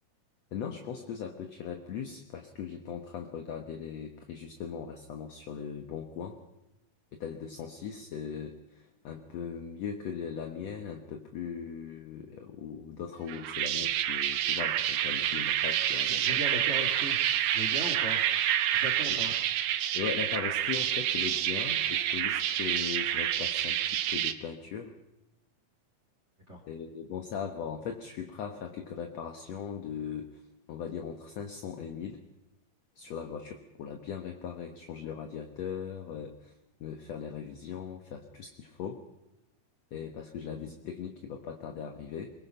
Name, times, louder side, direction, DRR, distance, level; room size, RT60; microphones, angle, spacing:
voice 1, 0.5-6.4 7.1-16.4 19.1-19.2 19.9-24.9 26.7-30.4 30.7-32.2 33.0-36.5 36.8-39.0 39.9-42.3, left 7 dB, 60° left, 5 dB, 2.1 m, -39 dB
sound 1, 13.3-24.3, right 11 dB, 75° right, 2.5 m, -28 dB
voice 2, 16.1-17.2 17.5-18.2 18.7-19.3 26.5-26.6, left 1 dB, 25° right, 3 dB, 2.1 m, -38 dB
23.0 x 21.5 x 5.6 m, 0.94 s
omnidirectional pair, 3.8 m